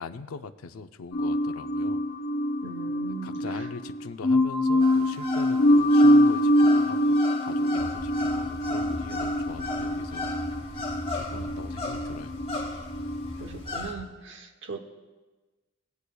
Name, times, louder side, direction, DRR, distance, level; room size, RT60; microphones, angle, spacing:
voice 1, 0.0-2.0 3.2-10.3 11.2-12.4, left 4 dB, 90° left, 10 dB, 0.5 m, -42 dB
sound 1, 1.1-13.4, equal, 50° left, 0.7 m, -24 dB
voice 2, 2.6-3.7 11.3-11.7 13.4-14.8, right 4 dB, 60° right, 5 dB, 0.9 m, -40 dB
sound 2, 4.8-13.9, left 2 dB, 25° left, 1.4 m, -36 dB
sound 3, 7.7-14.0, equal, 5° left, 1.5 m, -42 dB
21.5 x 8.2 x 2.3 m, 1.3 s
head